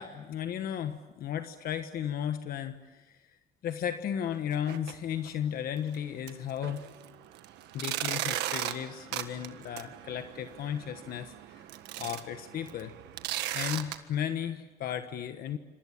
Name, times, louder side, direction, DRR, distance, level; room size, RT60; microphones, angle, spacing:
voice 1, 0.0-3.2 3.6-6.8 7.7-11.6 12.0-12.9 13.5-15.6, left 9 dB, 60° left, 8 dB, 1.4 m, -35 dB
sound 1, 4.5-4.9 5.3-5.4 5.9-6.0 6.3-13.9, right 13 dB, 85° right, 1.6 m, -37 dB
27.0 x 26.0 x 7.3 m, 1.2 s
cardioid pair, 110°, 17 cm